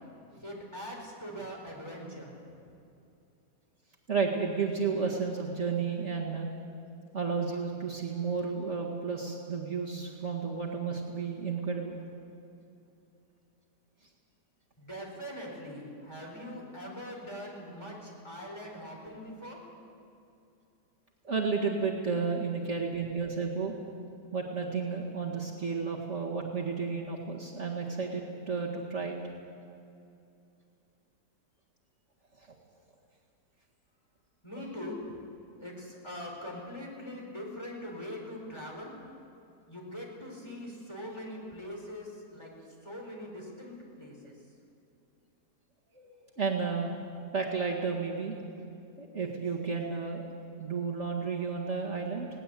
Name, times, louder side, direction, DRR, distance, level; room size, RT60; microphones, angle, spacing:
voice 1, 0.4-2.3 14.8-19.6 34.4-35.0 35.6-38.9 39.7-42.5 42.8-44.3, equal, 15° left, -2 dB, 4.7 m, -42 dB
voice 2, 4.1-6.5 7.1-12.0 21.2-23.7 24.3-29.2 32.4-32.5 34.5-34.6 45.9-46.9 47.3-48.3 49.0-50.2 50.6-52.3, right 5 dB, 45° right, -2 dB, 2.1 m, -32 dB
20.5 x 18.0 x 8.4 m, 2.6 s
omnidirectional pair, 1.7 m